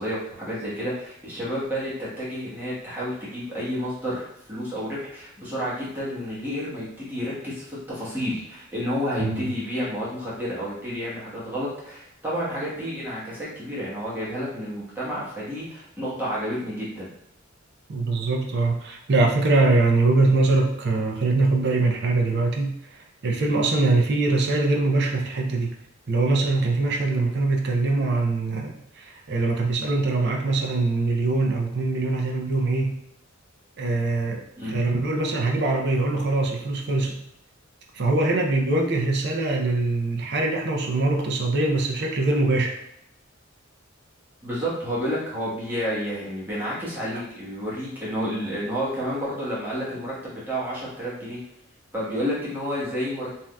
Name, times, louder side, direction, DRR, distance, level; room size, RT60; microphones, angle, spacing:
voice 1, 0.0-17.1 34.6-34.8 44.4-51.4 51.9-53.3, equal, 10° right, -9 dB, 1.1 m, -30 dB
voice 2, 9.2-9.5 17.9-25.8 26.1-33.0 33.8-37.3 37.9-42.8, right 2 dB, 55° right, 1 dB, 0.5 m, -23 dB
3.4 x 2.6 x 2.2 m, 0.79 s
head